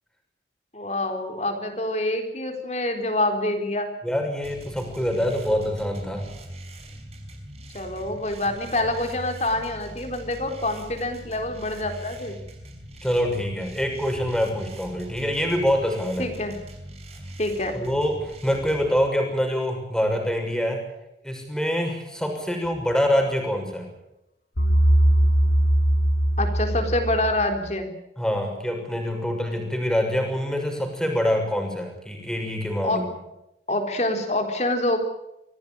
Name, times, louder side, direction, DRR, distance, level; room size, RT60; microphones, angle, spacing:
voice 1, 0.7-3.9 7.7-12.4 16.2-16.6 17.4-17.8 26.4-27.9 32.8-33.0 33.7-35.0, left 1 dB, 40° left, 5 dB, 4.0 m, -26 dB
voice 2, 4.0-6.3 13.0-16.3 17.7-20.8 21.2-23.9 28.2-33.1, equal, 5° left, 3 dB, 6.5 m, -25 dB
sound 1, 4.4-19.0, right 1 dB, 35° right, 5.5 m, -41 dB
sound 2, 24.6-27.7, right 1 dB, 75° left, 2.6 m, -20 dB
26.0 x 17.5 x 8.9 m, 0.88 s
head